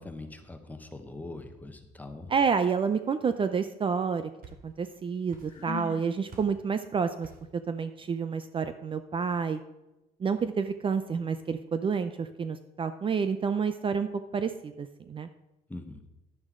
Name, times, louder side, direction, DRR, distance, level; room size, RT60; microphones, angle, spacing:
voice 1, 0.0-2.3 15.7-16.0, left 2 dB, 10° left, 6 dB, 1.2 m, -42 dB
voice 2, 2.3-4.3 4.6-7.3 7.7-9.6 10.2-14.1 14.3-15.3, right 6 dB, 30° right, 10 dB, 0.5 m, -29 dB
sound 1, 4.0-5.0 5.3-5.9 6.3-6.7 7.2-7.6, right 3 dB, 60° right, 2.7 m, -51 dB
Sigh, 5.5-6.1, left 6 dB, 40° left, 1.7 m, -39 dB
11.0 x 9.6 x 3.7 m, 0.99 s
cardioid pair, 110°, 17 cm